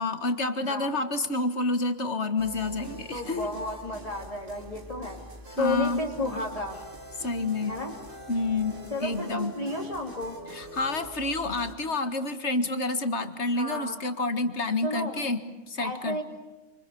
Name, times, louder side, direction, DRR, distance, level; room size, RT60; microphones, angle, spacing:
voice 1, 0.0-3.5 5.6-6.0 7.2-7.7 8.3-9.5 10.5-16.2, left 2 dB, 60° left, 9 dB, 2.2 m, -29 dB
voice 2, 0.6-0.9 3.1-6.8 7.7-7.9 8.9-10.4 13.5-14.0 14.8-15.2 15.8-16.2, left 2 dB, 25° left, -1 dB, 2.8 m, -32 dB
sound 1, 2.4-11.7, right 1 dB, 40° right, 2.8 m, -44 dB
28.5 x 27.5 x 7.0 m, 1.2 s
omnidirectional pair, 1.3 m